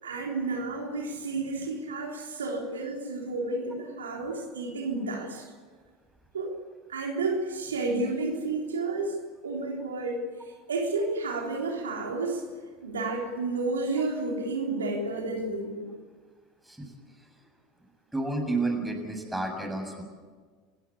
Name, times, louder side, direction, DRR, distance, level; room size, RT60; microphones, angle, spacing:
voice 1, 0.0-5.5 6.3-6.5 6.9-9.2 9.4-10.2 10.7-12.4 12.8-15.9, right 3 dB, 85° right, 0 dB, 3.7 m, -31 dB
voice 2, 18.1-20.0, right 2 dB, 5° right, 3 dB, 7.0 m, -30 dB
27.5 x 16.0 x 8.5 m, 1.5 s
hypercardioid pair, 80°, 0 cm